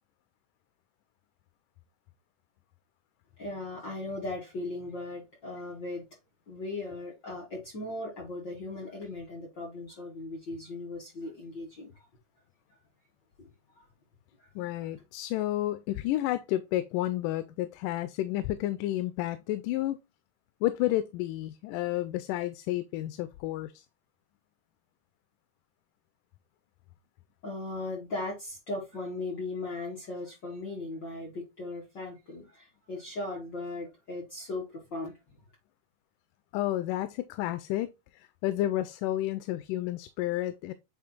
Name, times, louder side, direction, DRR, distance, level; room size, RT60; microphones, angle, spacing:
voice 1, 3.4-6.1 6.5-12.1 13.4-13.5 13.8-13.9 14.4-14.5 27.4-35.1, left 2 dB, 45° left, 1.8 m, -38 dB
voice 2, 14.6-20.0 20.6-23.9 36.5-40.7, left 14 dB, 90° left, 2.1 m, -31 dB
8.8 x 3.0 x 3.9 m
omnidirectional pair, 3.6 m